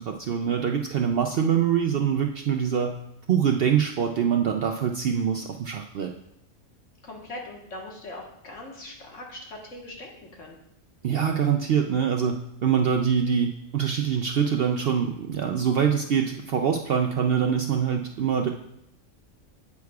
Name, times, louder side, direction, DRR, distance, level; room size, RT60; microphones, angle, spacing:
voice 1, 0.0-2.9 3.3-6.1 11.0-12.4 12.6-18.5, right 7 dB, 65° right, 3 dB, 0.6 m, -24 dB
voice 2, 7.0-10.6, left 1 dB, 65° left, 0 dB, 1.7 m, -41 dB
9.3 x 8.3 x 2.3 m, 0.77 s
omnidirectional pair, 1.4 m